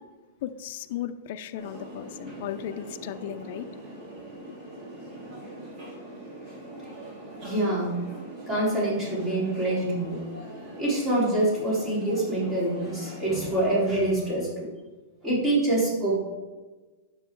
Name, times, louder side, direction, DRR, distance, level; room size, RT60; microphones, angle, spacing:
voice 1, 0.4-3.7, left 11 dB, 55° left, 0.6 m, -35 dB
sound 1, 1.5-13.9, right 1 dB, 30° right, 3.3 m, -42 dB
voice 2, 7.4-8.0 8.5-10.2 10.8-14.7 15.2-16.2, right 1 dB, 15° right, 4.0 m, -25 dB
10.0 x 7.9 x 4.6 m
supercardioid pair, 155°, 0 cm